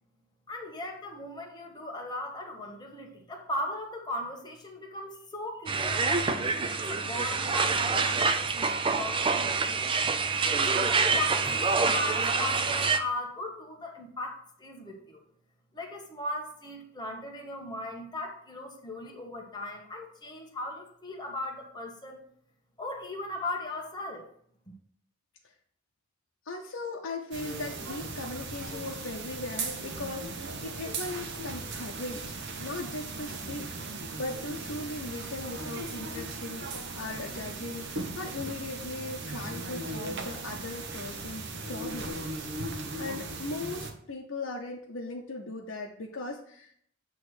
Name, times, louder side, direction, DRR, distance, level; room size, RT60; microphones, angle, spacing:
voice 1, 0.5-9.8 10.6-15.2 15.7-22.2 22.8-24.2, left 1 dB, 20° left, 1 dB, 1.2 m, -38 dB
sound 1, 5.7-13.0, right 4 dB, 25° right, 0.4 m, -26 dB
voice 2, 26.4-42.2 42.5-46.7, left 2 dB, 75° left, -1 dB, 0.8 m, -39 dB
sound 2, 27.3-43.9, right 3 dB, 60° right, 0.9 m, -38 dB
8.1 x 3.1 x 6.3 m, 0.65 s
head